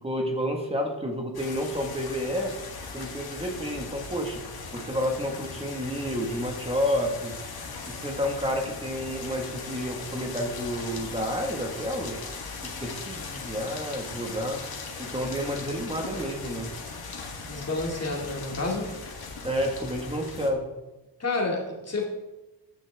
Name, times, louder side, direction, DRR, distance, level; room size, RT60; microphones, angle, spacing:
voice 1, 0.0-2.5 2.9-4.4 4.7-7.3 7.9-12.2 12.6-14.6 15.0-16.7 19.4-20.7, equal, 15° right, 2 dB, 1.7 m, -30 dB
sound 1, 1.3-20.5, left 4 dB, 55° left, 1.8 m, -39 dB
voice 2, 17.4-18.9 21.2-22.1, left 3 dB, 35° left, -1 dB, 2.5 m, -29 dB
14.5 x 9.8 x 3.6 m, 1.0 s
wide cardioid pair, 180°, 43 cm